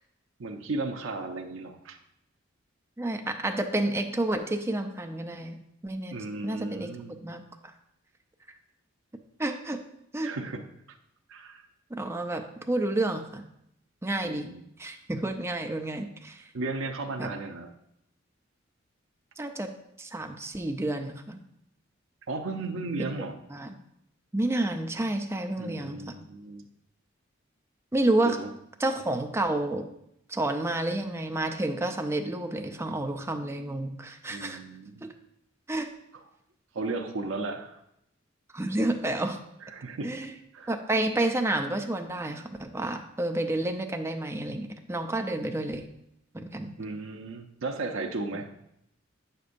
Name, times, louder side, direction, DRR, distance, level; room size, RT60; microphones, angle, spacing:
voice 1, 0.4-2.0 6.1-7.2 10.2-10.6 10.9-11.0 11.3-11.7 14.2-14.6 16.5-17.7 22.3-23.4 25.6-26.7 28.2-28.5 34.3-35.1 36.7-37.8 39.6-40.1 40.5-40.7 46.8-48.5, right 3 dB, 75° right, 3 dB, 0.6 m, -35 dB
voice 2, 3.0-5.6 5.8-6.2 6.4-6.9 7.2-7.7 9.4-9.8 10.1-10.3 11.9-13.4 14.0-14.5 14.8-16.5 17.2-17.3 19.4-19.7 20.0-21.4 23.0-23.1 23.5-23.7 24.3-26.2 27.9-28.4 28.8-29.9 30.3-34.6 35.0-35.1 35.7-35.9 38.5-39.4 40.0-40.3 40.7-45.9 46.3-46.7, right 1 dB, 15° right, 5 dB, 0.5 m, -30 dB
8.3 x 6.6 x 2.5 m, 0.77 s
head